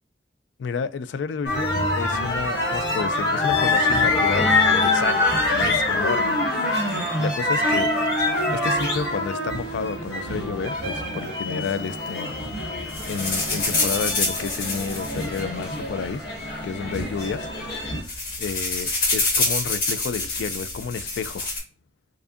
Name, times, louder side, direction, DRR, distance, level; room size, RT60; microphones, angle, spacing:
voice 1, 0.6-6.4 7.2-7.9 8.5-12.4 13.0-16.2 16.6-17.5 18.1-21.5, left 6 dB, 90° left, 0.3 m, -31 dB
sound 1, 1.4-18.0, left 2 dB, 70° left, 1.9 m, -25 dB
sound 2, 12.9-16.1 16.9-17.0 17.3-17.5 17.8-21.6, left 3 dB, 50° left, 1.6 m, -26 dB
4.7 x 2.6 x 2.4 m
head